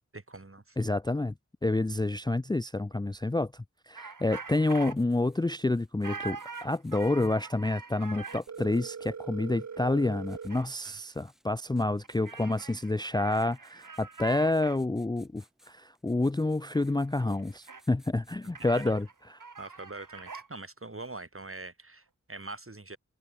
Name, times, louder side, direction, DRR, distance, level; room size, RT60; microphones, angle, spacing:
voice 1, 0.1-0.8 10.8-11.0 11.7-11.9 18.4-18.9 19.6-23.0, right 2 dB, 45° right, 3.6 m, -44 dB
voice 2, 0.8-1.3 1.6-19.1, left 2 dB, 15° left, 0.5 m, -29 dB
sound 1, 4.0-5.0 6.0-8.4 9.7-9.8 10.1-10.7 12.0-14.8 16.7-16.9 17.2-17.8 18.5-20.5, right 4 dB, 90° right, 2.3 m, -43 dB
Writing, 4.2-19.2, equal, ahead, 7.2 m, -66 dB
Telephone, 8.5-10.5, right 6 dB, 60° right, 0.8 m, -41 dB
wide cardioid pair, 50°, 31 cm